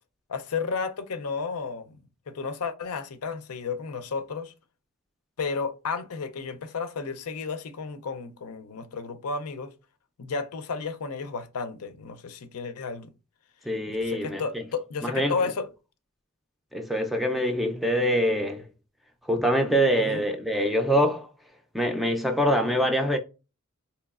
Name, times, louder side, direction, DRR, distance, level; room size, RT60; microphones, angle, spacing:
voice 1, 0.3-2.0 2.3-4.5 5.4-9.7 10.2-13.1 13.9-15.7 20.0-20.2, left 5 dB, 90° left, 0.5 m, -32 dB
voice 2, 13.7-14.6 15.0-15.4 16.7-18.7 19.3-21.3 21.7-23.2, equal, ahead, 0.4 m, -24 dB
3.9 x 2.9 x 2.4 m
head